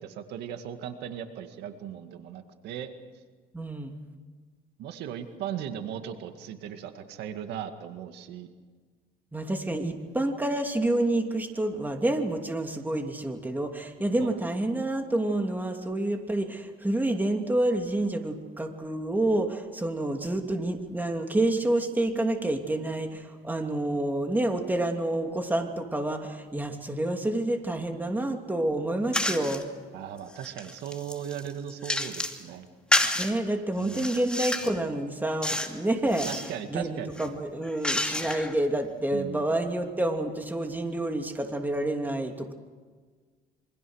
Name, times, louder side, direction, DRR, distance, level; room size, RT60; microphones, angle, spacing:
voice 1, 0.0-2.9 4.8-8.5 14.2-14.3 29.9-32.7 33.8-34.1 36.3-37.1 39.1-39.4, right 9 dB, 85° right, 7 dB, 2.1 m, -37 dB
voice 2, 3.5-4.0 9.3-29.7 33.1-36.3 36.7-42.5, right 1 dB, 10° right, 4 dB, 2.9 m, -28 dB
sound 1, 29.1-29.6 30.2-32.4 32.9-33.3 33.8-34.8 35.4-35.8 36.1-36.5 37.1-38.6, left 1 dB, 5° left, 2.6 m, -29 dB
27.5 x 25.0 x 6.5 m, 1.5 s
cardioid pair, 110°, 17 cm